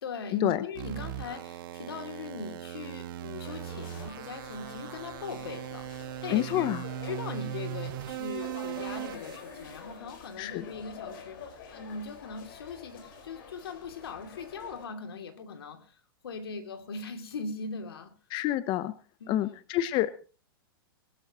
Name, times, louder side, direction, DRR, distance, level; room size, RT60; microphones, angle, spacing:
voice 1, 0.0-5.9 6.2-6.7 7.0-16.0 16.2-18.1 19.2-19.5, left 4 dB, 80° left, 2.9 m, -40 dB
sound 1, 0.8-9.8, right 12 dB, 60° right, 1.9 m, -39 dB
sound 2, 3.4-14.8, left 6 dB, 60° left, 5.1 m, -48 dB
voice 2, 6.3-6.8 10.4-10.6 18.3-18.9 19.3-20.3, left 14 dB, 40° left, 0.9 m, -28 dB
22.5 x 13.0 x 3.1 m
hypercardioid pair, 125°, 12 cm